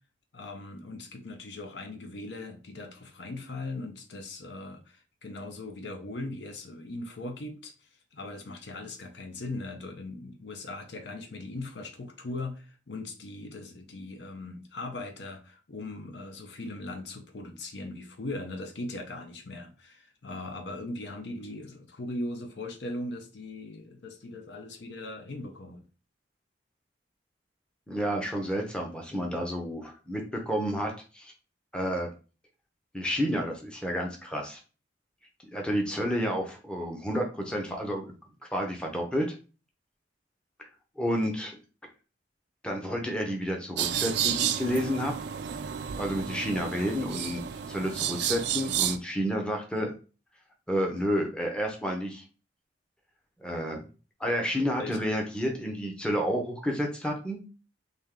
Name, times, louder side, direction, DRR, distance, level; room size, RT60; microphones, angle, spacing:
voice 1, 0.3-25.8 54.8-55.0, left 2 dB, 65° left, 0.6 m, -39 dB
voice 2, 27.9-31.3 31.7-32.1 32.9-34.6 35.5-38.1 38.5-39.4 41.0-41.6 42.6-45.1 45.9-47.4 47.7-49.9 50.7-52.2 53.4-53.9 54.2-57.4, equal, 5° left, 0.6 m, -30 dB
sound 1, 43.8-49.0, right 9 dB, 65° right, 0.3 m, -31 dB
3.5 x 2.7 x 3.6 m
head